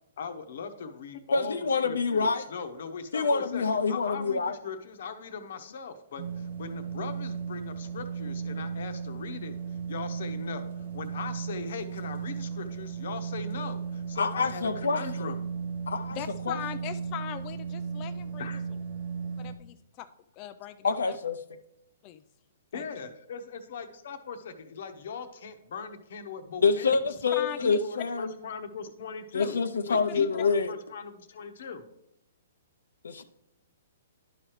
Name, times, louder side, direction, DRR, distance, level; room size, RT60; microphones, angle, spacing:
voice 1, 0.2-1.5 1.8-15.5 18.4-18.6 22.7-27.0 27.6-29.6 29.9-31.8, left 6 dB, 65° left, 8 dB, 0.9 m, -40 dB
voice 2, 1.3-2.4 3.1-4.6 14.2-15.3 15.9-16.2 16.5-16.6 20.8-21.4 26.6-28.3 29.3-30.7 33.0-33.2, left 4 dB, 90° left, 8 dB, 0.5 m, -26 dB
sound 1, 6.2-19.6, right 6 dB, 70° right, 0.9 m, -36 dB
voice 3, 16.1-18.5 19.4-20.1 20.4-21.2 22.0-22.2 22.7-22.8 27.3-27.8 30.3-30.4, left 12 dB, 30° left, 9 dB, 0.3 m, -40 dB
11.0 x 4.9 x 3.0 m, 0.84 s
hypercardioid pair, 145°, 0 cm